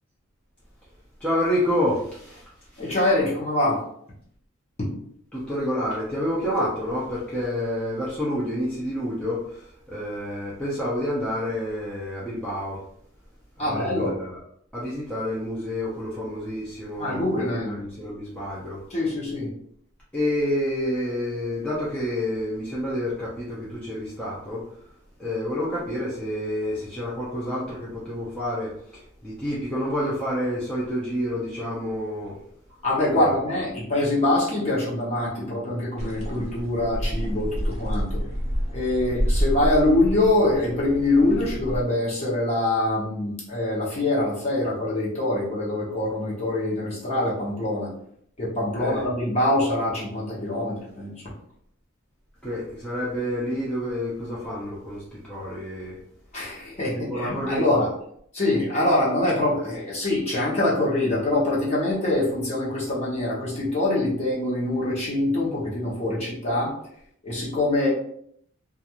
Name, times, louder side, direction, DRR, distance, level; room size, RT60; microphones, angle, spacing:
voice 1, 1.2-2.9 5.3-12.8 13.6-14.4 14.7-18.8 20.1-24.9 25.2-32.4 33.1-33.4 48.8-49.0 52.4-56.0 56.7-57.6, equal, 5° left, -8 dB, 0.5 m, -29 dB
voice 2, 2.8-3.8 4.8-4.9 13.6-14.1 17.0-17.8 18.9-19.5 32.8-38.2 38.7-47.9 48.4-51.1 56.3-57.9 58.3-66.8 67.2-67.9, left 1 dB, 35° left, -7 dB, 0.9 m, -24 dB
sound 1, 36.0-41.8, equal, 35° right, 0.6 m, -28 dB
2.5 x 2.4 x 2.9 m, 0.68 s
head